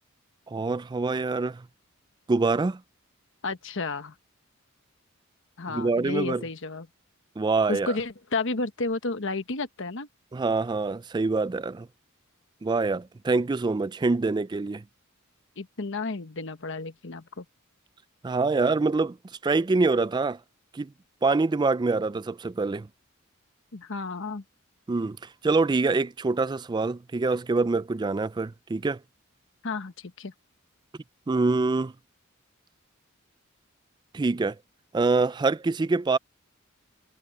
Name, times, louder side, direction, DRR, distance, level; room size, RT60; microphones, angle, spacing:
voice 1, 0.5-1.7 2.3-2.8 5.7-6.4 7.4-7.9 10.3-11.9 12.6-14.8 18.2-19.2 19.4-20.4 20.7-20.9 21.2-22.9 24.9-25.2 25.4-29.0 31.3-31.9 34.1-34.6 34.9-36.2, right 3 dB, 20° right, 0.3 m, -25 dB
voice 2, 3.4-4.1 5.6-6.9 7.7-10.1 15.6-17.4 23.7-24.4 29.6-30.3, left 3 dB, 60° left, 1.2 m, -32 dB
head